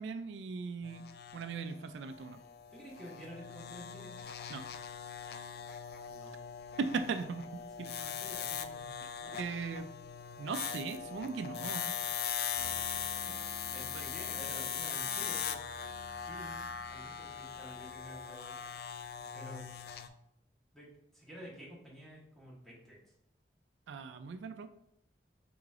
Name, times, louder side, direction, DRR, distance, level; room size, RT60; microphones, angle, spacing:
voice 1, 0.0-2.4 4.5-4.6 6.8-7.9 9.3-9.9 10.4-12.0 13.7-14.0 23.9-24.7, right 5 dB, 80° right, 9 dB, 0.3 m, -39 dB
sound 1, 0.8-20.1, left 8 dB, 60° left, 0.3 m, -40 dB
voice 2, 2.7-4.1 6.1-6.4 8.0-8.9 9.2-9.4 13.7-15.6 16.2-18.6 19.3-19.6 20.7-20.9 21.1-23.0, equal, ahead, -6 dB, 1.2 m, -50 dB
sound 2, 12.5-18.2, left 1 dB, 45° right, 0.9 m, -53 dB
4.7 x 3.8 x 2.4 m, 0.75 s
head